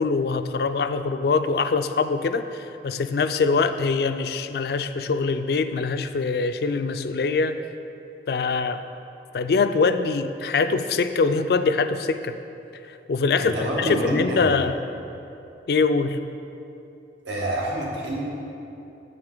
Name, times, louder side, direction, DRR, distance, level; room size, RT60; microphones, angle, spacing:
voice 1, 0.0-7.6 8.3-8.8 9.3-12.4 12.9-14.8 15.7-16.2, left 4 dB, 60° left, 10 dB, 0.3 m, -23 dB
voice 2, 13.4-14.6 17.2-18.2, right 1 dB, 80° right, -4 dB, 1.6 m, -27 dB
8.9 x 7.6 x 3.8 m, 2.8 s
head